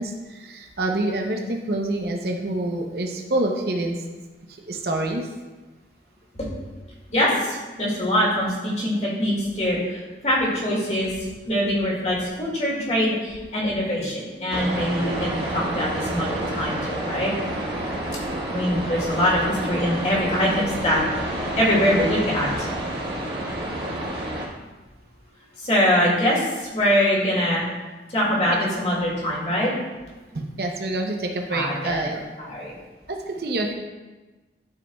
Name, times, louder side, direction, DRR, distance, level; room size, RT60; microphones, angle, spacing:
voice 1, 0.0-4.0 4.7-5.3 30.3-32.3 33.1-33.7, right 2 dB, 60° right, 2 dB, 0.8 m, -27 dB
voice 2, 7.1-17.3 18.5-21.0 21.5-22.7 25.6-27.7 28.1-29.7 31.5-32.1 32.4-32.7, equal, 40° left, -5 dB, 2.2 m, -23 dB
sound 1, 14.5-24.5, right 1 dB, 80° right, 1.5 m, -29 dB
12.0 x 5.1 x 2.3 m, 1.2 s
head